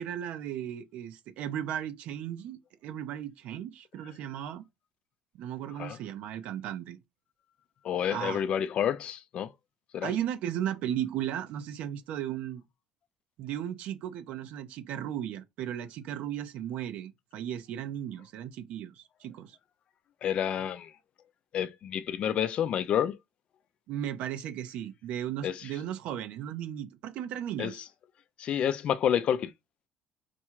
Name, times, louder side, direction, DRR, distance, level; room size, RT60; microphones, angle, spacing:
voice 1, 0.0-4.6 5.3-7.0 8.1-8.4 10.0-12.6 13.4-19.6 23.9-27.8, right 10 dB, 70° right, 0.7 m, -36 dB
voice 2, 7.8-9.5 9.9-10.1 20.2-20.9 21.5-23.2 25.4-25.7 27.6-27.8 28.4-29.5, left 9 dB, 50° left, 0.4 m, -29 dB
4.2 x 2.3 x 4.5 m
cardioid pair, 120°, 2 cm